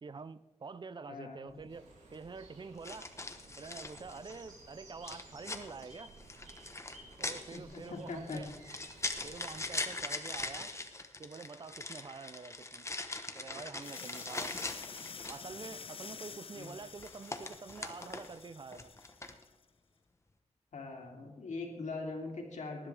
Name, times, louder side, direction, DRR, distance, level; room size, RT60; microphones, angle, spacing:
voice 1, 0.0-3.1 3.6-6.1 7.2-8.5 9.2-10.7 11.2-12.8 13.3-14.6 15.3-18.9, right 4 dB, 40° right, 15 dB, 0.6 m, -47 dB
voice 2, 1.1-1.6 7.5-8.4 16.5-16.7 20.7-22.9, left 3 dB, 75° left, 1 dB, 2.9 m, -42 dB
sound 1, 1.5-1.7 2.8-4.5 5.0-15.5 16.7-18.4 18.7-19.4, left 2 dB, 25° left, 1.1 m, -41 dB
sound 2, 1.7-9.8, right 2 dB, 85° right, 3.6 m, -56 dB
sound 3, 13.8-19.5, left 5 dB, 50° left, 0.7 m, -48 dB
19.0 x 11.0 x 3.4 m, 1.1 s
wide cardioid pair, 100°, 12 cm